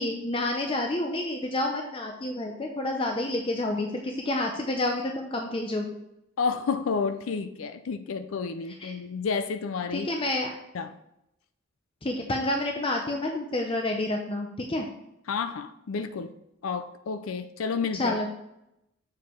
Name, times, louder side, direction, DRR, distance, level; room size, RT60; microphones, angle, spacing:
voice 1, 0.0-6.0 8.7-8.9 9.9-10.5 12.0-14.9 17.9-18.3, left 1 dB, 25° left, 2 dB, 0.6 m, -29 dB
voice 2, 6.4-10.1 10.7-10.9 15.3-16.3 16.6-18.2, left 5 dB, 75° left, 10 dB, 0.5 m, -30 dB
7.3 x 4.8 x 4.4 m, 0.83 s
head